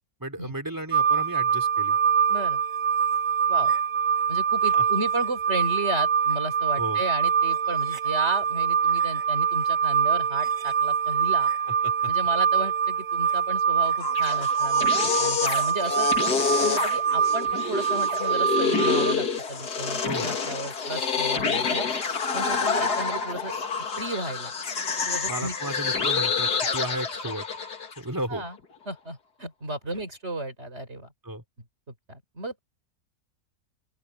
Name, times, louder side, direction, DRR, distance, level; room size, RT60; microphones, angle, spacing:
voice 1, 0.2-2.0 4.7-4.8 6.8-7.0 11.8-12.1 20.0-20.3 25.3-27.5 28.0-28.4 31.2-31.4, right 1 dB, 10° right, 3.5 m, -34 dB
sound 1, 0.9-19.1, right 7 dB, 60° right, 1.4 m, -24 dB
voice 2, 2.3-2.6 3.5-3.7 4.3-11.5 12.1-16.1 16.6-21.9 22.3-23.5 24.0-24.5 25.0-25.9 28.3-28.6 28.9-31.1 32.1-32.6, right 1 dB, 45° right, 5.6 m, -33 dB
sound 2, 13.8-28.0, left 5 dB, 85° left, 2.5 m, -27 dB
open air
omnidirectional pair, 1.7 m